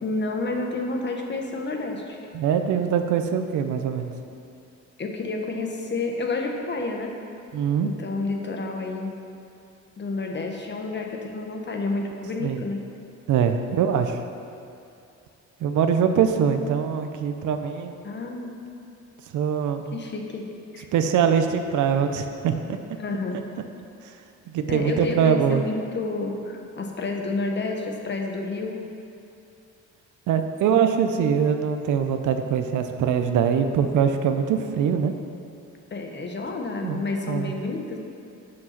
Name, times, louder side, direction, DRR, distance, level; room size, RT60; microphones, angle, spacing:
voice 1, 0.0-2.2 5.0-7.1 7.8-9.1 10.0-12.8 18.0-18.5 19.9-20.4 20.7-20.9 23.0-23.4 24.7-28.8 35.9-38.0, left 3 dB, 35° left, 2 dB, 1.1 m, -30 dB
voice 2, 2.3-4.1 7.5-7.9 12.4-12.6 13.3-14.2 15.6-17.9 19.3-19.9 20.9-22.8 24.5-25.6 30.3-35.1 36.8-37.0 37.3-37.5, right 7 dB, 80° right, 7 dB, 0.7 m, -23 dB
7.6 x 6.0 x 5.8 m, 2.6 s
cardioid pair, 90°, 30 cm